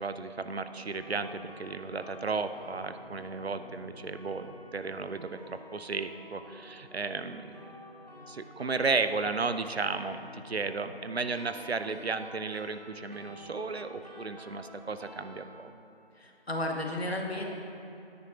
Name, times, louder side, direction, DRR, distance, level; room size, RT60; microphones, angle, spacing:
voice 1, 0.0-4.5 4.7-7.6 8.3-15.7, right 4 dB, 80° right, 10 dB, 0.6 m, -34 dB
sound 1, 0.6-15.5, equal, 40° left, 1.4 m, -50 dB
voice 2, 16.1-17.5, left 1 dB, 75° left, 1 dB, 1.4 m, -33 dB
9.6 x 9.6 x 3.0 m, 2.9 s
figure-of-eight pair, 180°, 31 cm